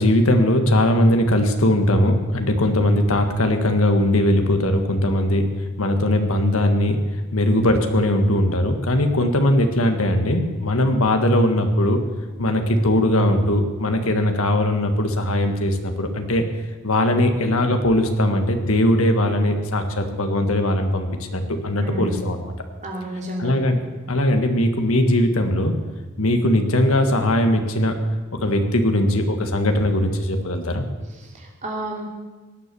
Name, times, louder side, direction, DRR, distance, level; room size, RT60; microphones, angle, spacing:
voice 1, 0.0-5.5 5.8-7.0 7.3-12.0 12.4-16.5 16.8-22.4 23.4-23.8 24.1-25.7 26.2-28.0 28.4-30.8, left 1 dB, 75° left, 6 dB, 1.6 m, -19 dB
voice 2, 21.8-22.1 22.8-23.5 31.1-32.1, right 1 dB, 35° right, -1 dB, 2.7 m, -31 dB
17.5 x 9.8 x 6.9 m, 1.3 s
head